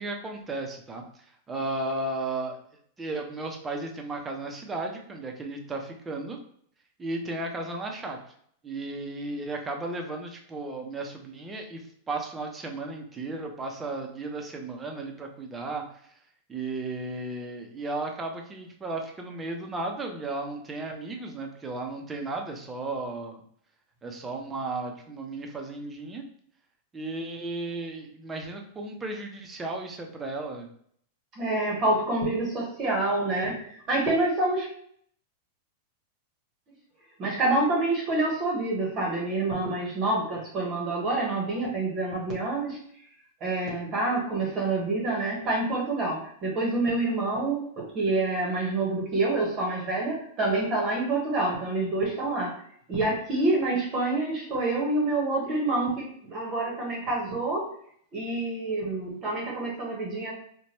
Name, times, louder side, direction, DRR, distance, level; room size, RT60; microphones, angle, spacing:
voice 1, 0.0-2.6 3.0-6.4 7.0-8.2 8.6-15.8 16.5-23.4 24.0-26.2 26.9-30.7, right 2 dB, 20° right, 3 dB, 0.6 m, -34 dB
voice 2, 31.4-34.7 37.2-42.8 43.4-52.5 52.9-57.7 58.1-60.3, right 2 dB, 35° right, -2 dB, 0.9 m, -27 dB
2.9 x 2.2 x 2.9 m, 0.64 s
hypercardioid pair, 110°, 0 cm